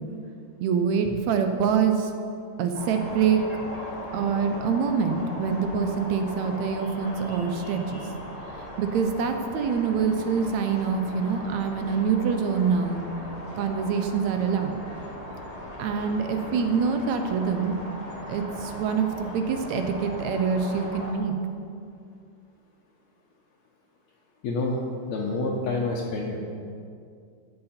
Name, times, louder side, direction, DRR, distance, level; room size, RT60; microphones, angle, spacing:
voice 1, 0.6-2.1 2.6-3.4 4.1-8.0 8.8-13.0 13.6-14.8 15.8-17.8 18.3-21.4, right 6 dB, 75° right, 6 dB, 2.0 m, -25 dB
sound 1, 2.7-21.1, left 1 dB, 40° left, 0.5 m, -39 dB
voice 2, 24.4-24.8 25.1-26.4, left 3 dB, 75° left, -4 dB, 2.2 m, -27 dB
14.0 x 7.8 x 4.4 m, 2.4 s
omnidirectional pair, 3.4 m